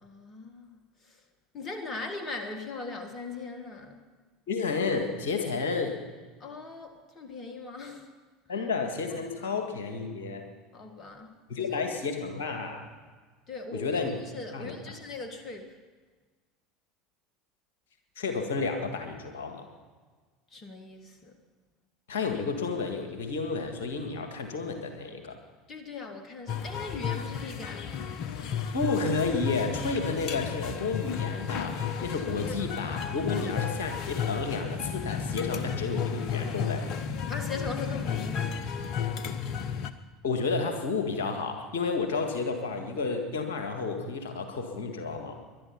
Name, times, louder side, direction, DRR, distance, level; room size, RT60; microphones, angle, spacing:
voice 1, 0.0-1.2 1.5-4.0 6.4-8.1 9.4-9.6 10.7-11.8 13.5-14.0 14.3-15.8 20.5-21.3 25.7-28.1 32.4-32.5 33.3-33.7 37.3-38.6, left 3 dB, 35° left, 7 dB, 1.6 m, -40 dB
voice 2, 4.5-6.0 8.5-10.5 11.5-12.9 13.7-14.1 14.5-14.9 18.1-19.7 22.1-25.4 28.7-36.9 40.2-45.4, left 4 dB, 70° left, 5 dB, 1.9 m, -31 dB
sound 1, 26.5-39.9, left 7 dB, 50° left, 0.9 m, -33 dB
21.0 x 11.5 x 5.8 m, 1.4 s
figure-of-eight pair, 70°, 0 cm